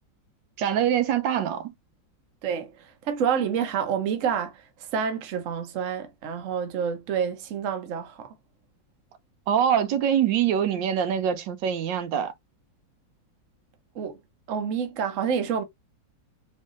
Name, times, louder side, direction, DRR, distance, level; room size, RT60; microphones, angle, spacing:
voice 1, 0.6-1.7 9.5-12.3, right 9 dB, 85° right, 1.3 m, -24 dB
voice 2, 2.4-4.5 4.9-8.3 13.9-14.2 14.5-15.6, right 7 dB, 55° right, 1.0 m, -28 dB
3.6 x 3.2 x 2.4 m
omnidirectional pair, 1.9 m